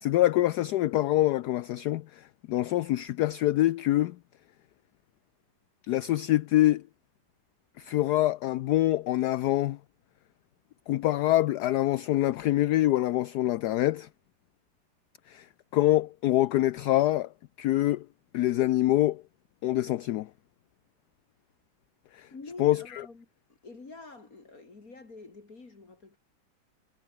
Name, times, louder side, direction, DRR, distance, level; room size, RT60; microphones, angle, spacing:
voice 1, 0.0-4.2 5.9-6.8 7.8-9.8 10.9-14.1 15.3-15.5 15.7-17.3 17.6-18.1 18.3-19.2 19.6-20.3 22.1-22.3 22.6-23.1, left 15 dB, 70° left, 0.9 m, -25 dB
voice 2, 22.3-23.3 23.6-26.2, left 3 dB, 45° left, 3.2 m, -47 dB
omnidirectional pair, 2.2 m